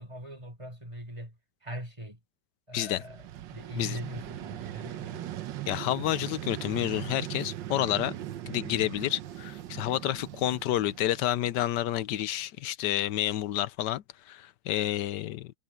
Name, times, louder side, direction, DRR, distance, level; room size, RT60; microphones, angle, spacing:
voice 1, 0.0-2.2 2.7-5.5, equal, 15° right, 4.2 m, -41 dB
Vehicle, 2.9-11.9, right 13 dB, 80° right, 1.5 m, -40 dB
voice 2, 5.7-8.2 8.5-15.5, left 13 dB, 75° left, 1.2 m, -29 dB
omnidirectional pair, 2.0 m